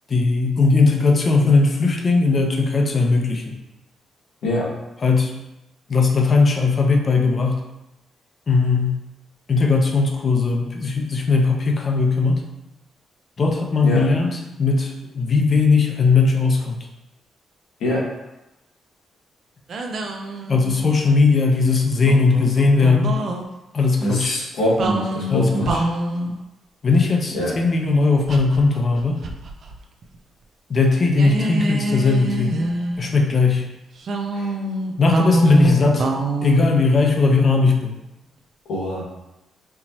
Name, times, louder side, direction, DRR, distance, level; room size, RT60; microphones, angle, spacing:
voice 1, 0.1-3.6 5.0-5.3 5.9-7.6 8.5-9.0 9.5-12.4 13.4-16.8 20.5-23.2 23.7-24.4 25.3-25.8 26.8-29.2 30.7-32.6 33.0-33.6 35.0-36.0 36.4-38.0, left 4 dB, 45° left, 2 dB, 0.7 m, -18 dB
sound 1, 19.7-21.0 22.0-23.4 24.8-26.4 28.3-29.7 30.0-30.2 31.1-33.2 34.0-37.8, right 1 dB, 60° right, 0.4 m, -26 dB
voice 2, 24.0-25.8 27.3-27.5 34.3-34.5 38.7-39.1, left 1 dB, 85° left, -5 dB, 1.4 m, -23 dB
4.5 x 2.9 x 2.9 m, 0.93 s
cardioid pair, 75°, 0 cm